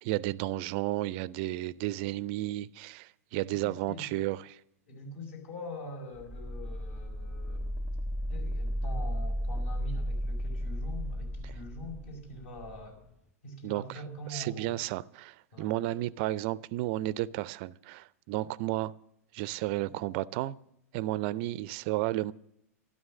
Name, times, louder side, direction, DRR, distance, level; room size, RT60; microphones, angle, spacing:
voice 1, 0.0-4.6 11.4-11.5 13.6-14.0 14.3-18.9 19.3-20.6 20.9-22.3, right 16 dB, 40° right, 0.5 m, -32 dB
voice 2, 3.4-4.1 4.9-7.7 8.3-13.0 13.4-14.8 15.5-15.8, equal, 55° left, 5.0 m, -44 dB
sound 1, 6.1-12.8, equal, 5° left, 1.1 m, -34 dB
12.5 x 12.5 x 6.3 m
figure-of-eight pair, 100°, 8 cm